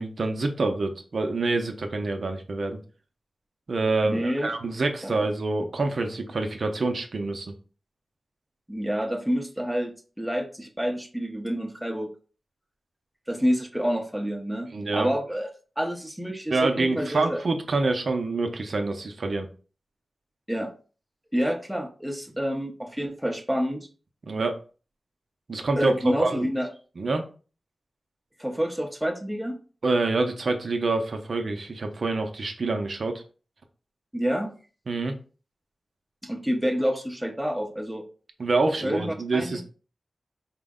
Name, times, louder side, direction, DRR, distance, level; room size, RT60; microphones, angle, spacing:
voice 1, 0.0-2.8 3.7-7.5 14.7-15.1 16.5-19.5 24.2-24.6 25.5-26.5 27.0-27.2 29.8-33.2 34.9-35.1 38.4-39.6, right 3 dB, 55° right, 5 dB, 0.5 m, -26 dB
voice 2, 4.0-4.5 5.0-5.2 8.7-12.1 13.3-15.5 15.8-17.4 20.5-20.7 21.3-23.9 25.8-26.7 28.4-29.6 34.1-34.5 36.2-38.0 38.8-39.6, equal, ahead, 1 dB, 0.6 m, -28 dB
4.3 x 2.0 x 3.6 m, 0.37 s
wide cardioid pair, 130°, 0 cm